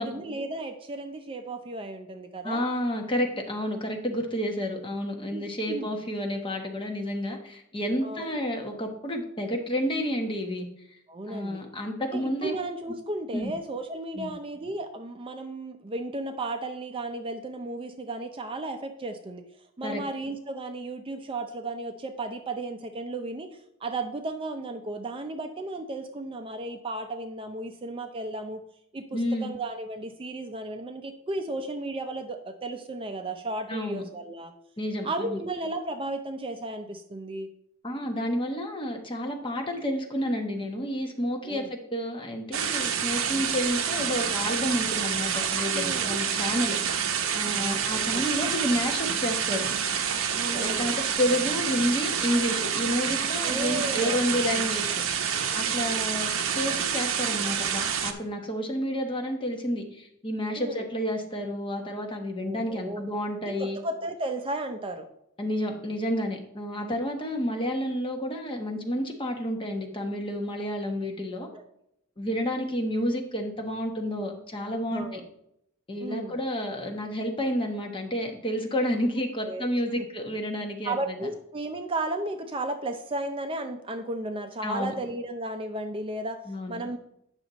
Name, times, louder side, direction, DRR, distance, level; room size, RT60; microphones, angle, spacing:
voice 1, 0.0-2.6 5.3-5.9 8.0-8.4 11.1-11.6 12.1-19.4 19.8-23.5 23.8-28.6 28.9-34.5 35.0-37.5 41.4-41.7 45.7-46.1 47.5-48.3 50.3-50.9 53.4-54.2 54.5-54.6 60.6-60.8 62.4-63.0 63.5-65.1 66.8-67.0 71.5-71.6 74.9-75.2 76.0-76.4 79.4-79.7 79.9-80.1 80.8-86.4 86.7-87.0, right 2 dB, 25° right, 6 dB, 0.5 m, -34 dB
voice 2, 2.4-10.7 11.3-12.5 13.3-13.5 14.1-14.3 19.8-20.0 29.1-29.5 33.7-34.0 34.8-35.4 37.8-46.8 47.3-49.7 50.5-55.0 55.5-63.8 65.4-71.5 72.2-75.2 75.9-81.3 84.6-84.9 86.5-86.8, equal, 25° left, 3 dB, 1.1 m, -30 dB
sound 1, 42.5-58.1, right 7 dB, 65° right, 0.7 m, -28 dB
8.9 x 6.1 x 4.0 m, 0.77 s
head